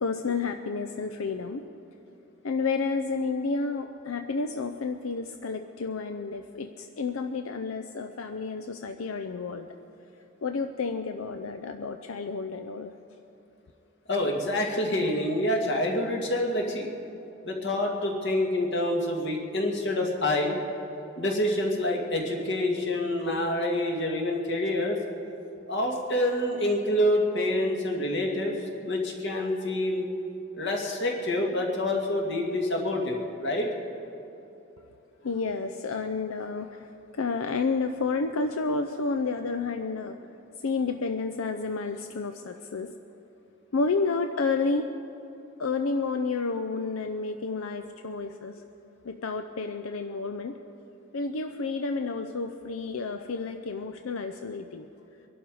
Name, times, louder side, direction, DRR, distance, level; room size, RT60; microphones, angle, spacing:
voice 1, 0.0-1.7 2.4-9.7 10.4-12.9 35.2-40.2 40.6-43.0 43.7-44.9 45.6-48.7 49.0-50.6 51.1-54.9, left 4 dB, 85° left, 7 dB, 0.6 m, -30 dB
voice 2, 14.1-16.9 17.5-20.5 21.2-25.0 25.7-28.6 28.9-30.1 30.6-33.7, left 1 dB, 55° left, 1 dB, 2.0 m, -27 dB
23.0 x 11.5 x 4.8 m, 2.9 s
head